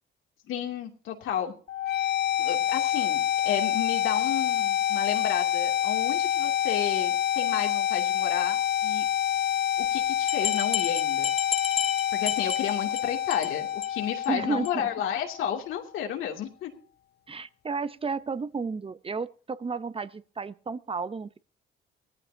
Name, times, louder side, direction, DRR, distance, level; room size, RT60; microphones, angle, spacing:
voice 1, 0.5-1.5 2.0-2.1 2.4-9.0 9.8-11.3 12.1-16.7, left 9 dB, 85° left, 2.7 m, -32 dB
sound 1, 1.7-15.6, left 10 dB, 55° left, 0.6 m, -27 dB
sound 2, 9.8-9.9 10.3-13.0 13.3-13.5 13.8-13.9 14.2-14.3 14.6-14.7, left 7 dB, 30° left, 0.8 m, -32 dB
voice 2, 14.3-14.9 17.3-21.4, right 4 dB, 30° right, 0.7 m, -32 dB
18.5 x 14.0 x 2.8 m
cardioid pair, 90°, 20 cm